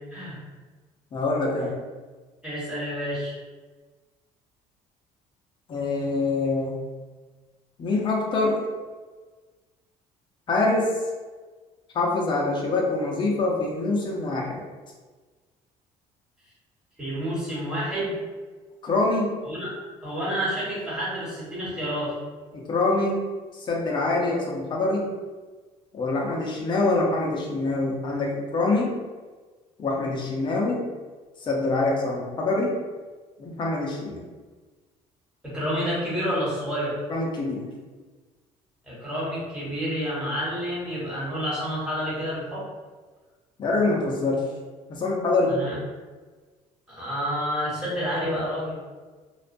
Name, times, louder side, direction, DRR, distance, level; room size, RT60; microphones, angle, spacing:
voice 1, 1.1-1.7 5.7-6.7 7.8-8.6 10.5-10.9 11.9-14.6 18.8-19.3 22.5-23.2 23.5-25.0 25.9-28.9 29.8-30.8 31.4-32.7 33.4-34.2 37.1-37.6 43.6-44.4 44.9-45.6, left 2 dB, 35° left, -2 dB, 0.6 m, -25 dB
voice 2, 2.4-3.3 17.0-18.1 19.4-19.7 20.0-22.1 35.4-37.0 38.9-42.6 45.5-45.8 46.9-48.7, equal, 5° right, -9 dB, 1.2 m, -29 dB
2.4 x 2.2 x 2.5 m, 1.4 s
cardioid pair, 130°, 14 cm